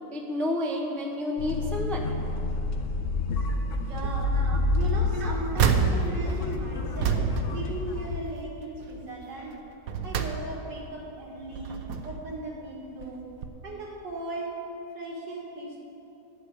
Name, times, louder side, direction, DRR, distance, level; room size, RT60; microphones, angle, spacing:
voice 1, 0.1-2.1 4.3-4.6 5.1-5.3 6.3-6.4, left 1 dB, ahead, 1 dB, 0.5 m, -31 dB
sound 1, 1.4-8.2, left 3 dB, 55° left, 0.9 m, -29 dB
sound 2, 3.7-4.3 4.7-8.4 8.8-9.1 9.6-10.9 11.4-12.3 13.0-13.2 13.4-13.5, right 6 dB, 65° right, 1.0 m, -29 dB
voice 2, 3.9-4.4 4.7-9.5 10.0-13.2 13.6-14.5 14.9-15.8, right 2 dB, 85° right, -3 dB, 2.7 m, -37 dB
11.0 x 6.0 x 8.3 m, 2.8 s
omnidirectional pair, 1.8 m